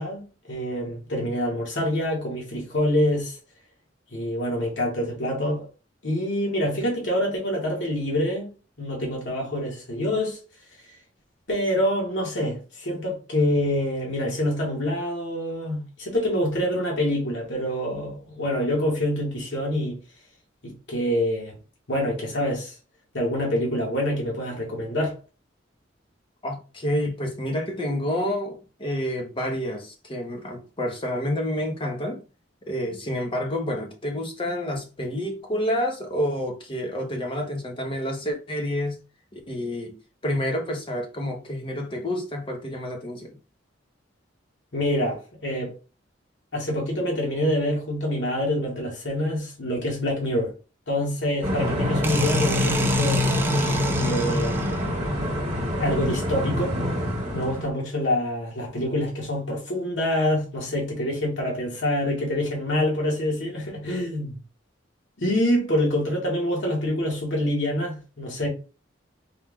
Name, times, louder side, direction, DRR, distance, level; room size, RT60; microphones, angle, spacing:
voice 1, 0.0-3.4 4.1-5.6 6.0-8.5 8.8-10.4 11.5-20.0 20.6-21.5 21.9-22.7 23.1-25.1 44.7-45.7 46.5-50.5 50.9-53.3 54.0-54.7 55.8-56.8 57.3-64.4 65.2-68.5, left 1 dB, 70° left, 1.6 m, -26 dB
voice 2, 26.4-32.2 32.7-39.0 39.3-40.0 40.2-43.4, equal, 30° left, 0.8 m, -29 dB
sound 1, 51.4-57.7, left 1 dB, 35° right, 1.4 m, -25 dB
sound 2, 52.0-55.0, right 3 dB, 10° right, 0.4 m, -31 dB
4.5 x 2.3 x 3.5 m
head